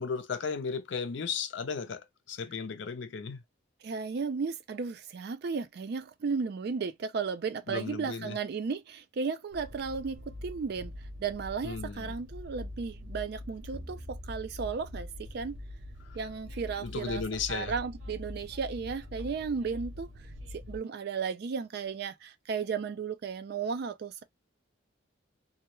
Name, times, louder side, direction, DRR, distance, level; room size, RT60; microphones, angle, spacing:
voice 1, 0.0-3.4 7.7-8.4 11.6-12.2 16.8-17.7, left 5 dB, 65° left, 0.5 m, -35 dB
voice 2, 3.8-10.9 11.2-15.6 16.1-17.2 17.5-20.1 20.5-24.2, right 5 dB, 55° right, 0.4 m, -34 dB
Train, 9.5-20.8, left 1 dB, 80° right, 0.7 m, -44 dB
sound 1, 13.7-16.5, equal, 10° right, 0.6 m, -51 dB
2.3 x 2.0 x 2.9 m
head